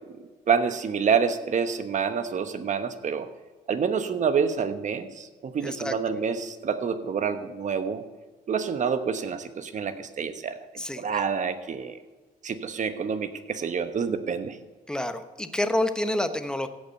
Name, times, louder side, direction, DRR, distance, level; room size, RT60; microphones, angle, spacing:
voice 1, 0.5-3.3 3.7-8.0 8.5-10.6 11.0-12.0 12.4-14.6, right 6 dB, 50° right, 10 dB, 1.1 m, -27 dB
voice 2, 5.6-6.2 10.8-11.2 14.9-16.7, left 1 dB, 5° left, 9 dB, 1.1 m, -28 dB
15.5 x 5.4 x 7.8 m, 1.3 s
supercardioid pair, 70°, 16 cm